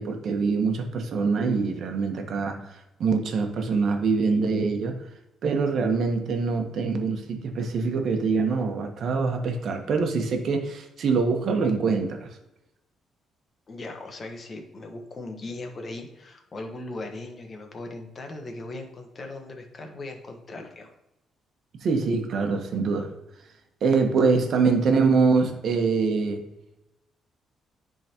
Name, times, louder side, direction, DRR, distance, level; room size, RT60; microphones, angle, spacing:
voice 1, 0.0-4.9 5.4-12.3 21.8-23.1 23.8-26.4, right 4 dB, 60° right, 5 dB, 1.1 m, -24 dB
voice 2, 13.7-20.9, left 2 dB, 40° left, 4 dB, 1.3 m, -38 dB
10.5 x 3.8 x 2.9 m, 0.90 s
cardioid pair, 90°, 0 cm